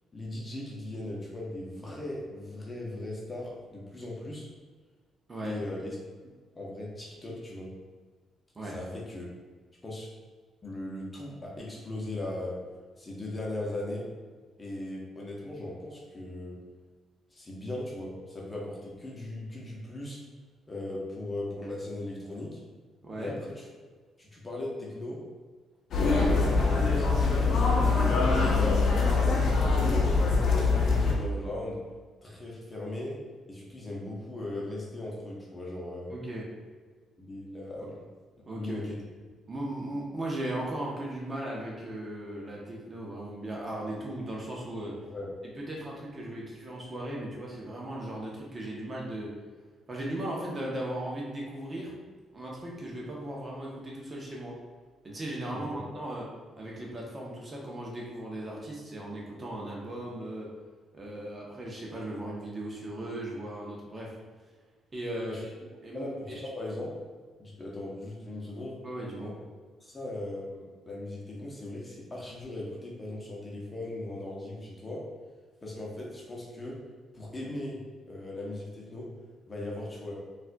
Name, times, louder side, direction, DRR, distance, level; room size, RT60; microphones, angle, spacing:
voice 1, 0.1-4.5 5.4-6.0 6.5-7.7 8.7-9.2 9.8-10.1 10.6-12.6 13.0-14.0 14.6-16.6 17.3-20.2 20.7-22.6 23.2-23.7 24.2-25.2 25.9-28.8 29.4-31.8 32.2-33.2 33.5-36.1 37.2-38.1 38.5-39.0 45.0-45.4 55.5-55.8 65.2-65.4 65.9-66.9 67.4-68.8 69.2-69.3 69.8-75.0 75.6-76.8 77.1-77.8 78.1-79.1 79.5-80.1, left 1 dB, 25° left, -3 dB, 0.8 m, -38 dB
voice 2, 23.0-23.4 36.1-36.4 38.5-38.9 39.5-44.9 45.6-49.3 49.9-51.9 52.3-54.5 55.0-56.2 56.6-60.5 60.9-64.1 64.9-65.4 65.8-66.4 68.8-69.3, right 1 dB, 30° right, -3 dB, 0.8 m, -37 dB
sound 1, 25.9-31.1, left 4 dB, 65° left, 0.6 m, -23 dB
4.1 x 2.4 x 2.2 m, 1.4 s
cardioid pair, 90°, 0 cm